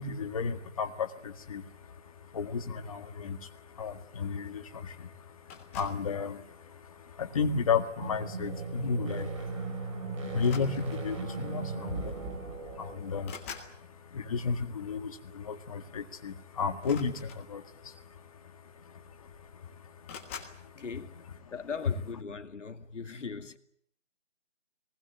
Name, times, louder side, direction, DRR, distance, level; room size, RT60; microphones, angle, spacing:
voice 1, 0.0-20.8, left 5 dB, 30° left, 1.7 m, -35 dB
sound 1, 5.5-6.1 7.0-7.3 8.8-9.0 9.3-9.5 10.3-11.2 12.2-12.3 12.6-13.8 16.7-17.8 18.7-18.8 19.1-19.6 20.1-20.6, left 7 dB, 10° left, 1.4 m, -46 dB
sound 2, 7.9-13.5, right 3 dB, 25° right, 3.6 m, -37 dB
voice 2, 20.7-21.2 21.5-23.6, left 5 dB, 75° left, 2.3 m, -40 dB
23.0 x 20.0 x 8.7 m
hypercardioid pair, 170°, 38 cm